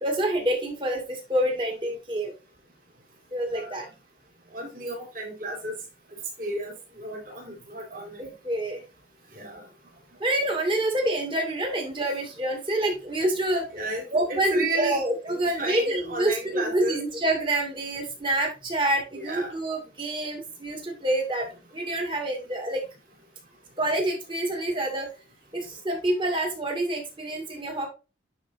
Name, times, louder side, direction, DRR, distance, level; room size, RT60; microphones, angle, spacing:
voice 1, 0.0-2.3 3.3-3.9 8.2-8.8 10.2-13.7 14.1-22.8 23.8-25.1 25.5-27.9, right 1 dB, 25° right, 1.9 m, -27 dB
voice 2, 3.5-3.9 4.5-5.8 6.4-8.3 9.3-9.6 13.7-15.0 15.3-17.0 19.1-19.5, right 1 dB, 50° right, 3.2 m, -33 dB
9.8 x 4.4 x 2.6 m
head